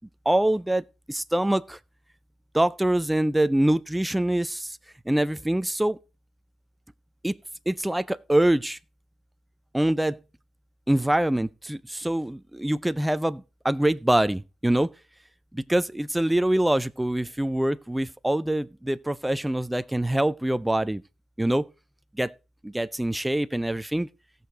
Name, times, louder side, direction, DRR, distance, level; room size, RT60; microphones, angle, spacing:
voice 1, 0.3-1.8 2.5-4.8 5.1-6.0 7.2-7.3 7.7-8.8 9.7-10.2 10.9-14.9 15.5-21.0 21.4-21.7 22.2-22.3 22.6-24.1, right 1 dB, 5° right, 0.5 m, -24 dB
16.5 x 6.6 x 3.9 m
cardioid pair, 90°, 0 cm